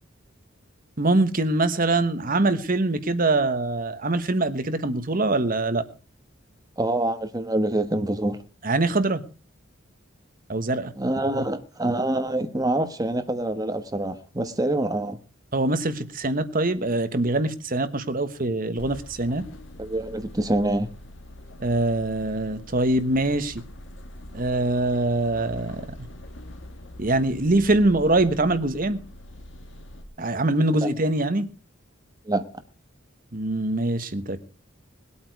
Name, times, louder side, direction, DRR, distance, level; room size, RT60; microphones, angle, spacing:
voice 1, 1.0-5.8 8.6-9.2 10.5-10.9 11.4-11.5 15.5-19.5 21.6-23.6 24.3-25.8 27.0-29.0 30.2-31.5 33.3-34.4, right 2 dB, 45° right, 1.2 m, -23 dB
voice 2, 6.8-8.4 11.0-15.2 19.8-20.9 30.8-30.9 32.3-32.4, right 1 dB, 20° right, 1.2 m, -25 dB
sound 1, 18.8-30.0, left 1 dB, 65° left, 2.0 m, -43 dB
20.0 x 8.6 x 4.7 m
head